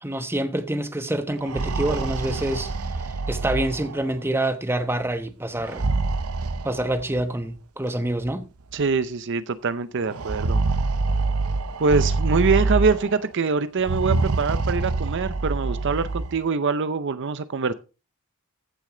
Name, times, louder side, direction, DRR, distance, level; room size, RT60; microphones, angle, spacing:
voice 1, 0.0-5.8 6.6-8.5, right 1 dB, 10° right, 1.0 m, -27 dB
sound 1, 1.3-4.2 5.6-7.3 8.3-8.4 8.7-8.8 10.1-13.2 13.8-16.4, right 3 dB, 90° right, 0.8 m, -26 dB
voice 2, 8.7-10.6 11.8-17.7, right 4 dB, 55° right, 0.6 m, -24 dB
15.0 x 6.4 x 3.8 m
head